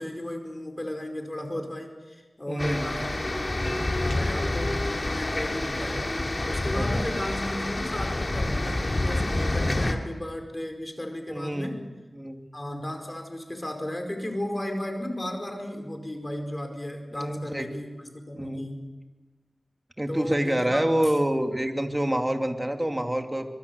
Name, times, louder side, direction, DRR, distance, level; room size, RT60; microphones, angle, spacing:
voice 1, 0.0-3.2 3.6-6.1 6.4-11.9 12.5-19.0 20.1-20.9, left 1 dB, 25° left, 4 dB, 4.9 m, -35 dB
voice 2, 2.5-3.0 6.7-7.0 11.3-11.8 12.1-12.4 17.1-17.7 18.3-18.7 20.0-23.5, right 1 dB, 20° right, 4 dB, 2.6 m, -27 dB
sound 1, 2.6-9.9, left 2 dB, 45° left, 2.7 m, -28 dB
25.0 x 22.5 x 7.0 m, 1.2 s
wide cardioid pair, 60°, 0 cm